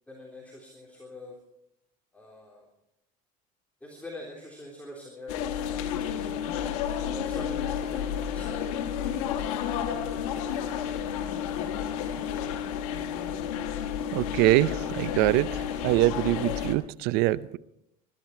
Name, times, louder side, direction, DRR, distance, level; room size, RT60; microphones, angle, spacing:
voice 1, 0.1-1.4 2.1-2.7 3.8-6.5 7.0-8.7 10.1-11.0, left 2 dB, 10° left, -2 dB, 3.6 m, -44 dB
sound 1, 5.3-16.7, left 9 dB, 90° left, 1.7 m, -31 dB
voice 2, 14.1-17.6, right 17 dB, 65° right, 18 dB, 0.7 m, -24 dB
21.0 x 13.0 x 4.6 m, 0.77 s
supercardioid pair, 115°, 18 cm